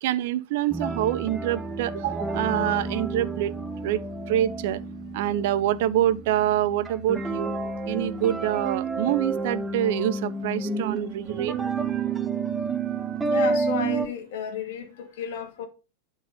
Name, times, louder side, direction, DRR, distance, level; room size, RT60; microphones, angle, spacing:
voice 1, 0.0-3.6 3.8-4.8 5.1-7.5 7.9-11.6, right 12 dB, 50° right, 0.5 m, -26 dB
sound 1, 0.7-14.1, right 3 dB, 15° right, 0.8 m, -30 dB
voice 2, 13.2-15.7, left 7 dB, 55° left, 1.5 m, -32 dB
9.3 x 4.0 x 5.2 m
figure-of-eight pair, 90°, 0 cm